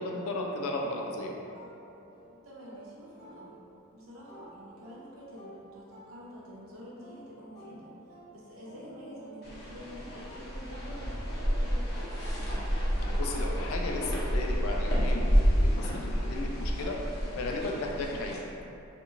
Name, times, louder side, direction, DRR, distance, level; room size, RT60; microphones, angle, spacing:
voice 1, 0.0-1.4 13.2-17.0 17.3-18.4, left 2 dB, 85° left, 0 dB, 0.3 m, -35 dB
sound 1, 1.0-3.9 4.3-12.6 13.0-18.4, right 1 dB, 35° left, 1.0 m, -52 dB
voice 2, 2.4-3.6 3.9-7.9 8.3-12.6 18.0-18.3, equal, 75° right, -5 dB, 0.7 m, -47 dB
sound 2, 9.4-18.4, equal, 50° left, 0.6 m, -29 dB
2.8 x 2.6 x 2.5 m, 2.7 s
head